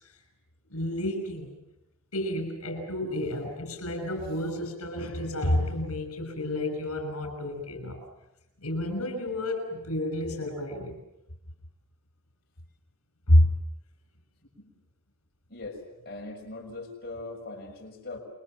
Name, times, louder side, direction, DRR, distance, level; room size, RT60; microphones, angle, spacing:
voice 1, 0.7-1.5 2.1-8.0 8.6-11.0 13.3-13.5, left 1 dB, 75° left, 6 dB, 6.2 m, -28 dB
voice 2, 15.5-18.2, left 2 dB, 45° left, 0 dB, 6.3 m, -40 dB
29.5 x 23.0 x 7.6 m, 0.85 s
head